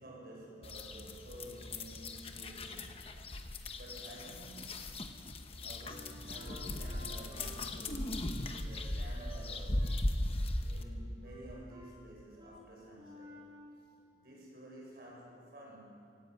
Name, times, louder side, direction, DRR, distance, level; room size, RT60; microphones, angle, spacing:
voice 1, 0.0-3.4 3.7-4.9 5.6-9.9 10.6-13.4 14.1-16.0, right 1 dB, 55° right, -3 dB, 7.0 m, -52 dB
sound 1, 0.6-10.8, left 1 dB, 35° left, 1.1 m, -38 dB
Wind instrument woodwind instrument, 5.9-9.4 9.8-10.0 10.3-11.0 11.2-12.0 12.4-12.6 12.9-13.6, equal, 25° right, 5.5 m, -54 dB
18.0 x 17.5 x 8.3 m, 2.6 s
head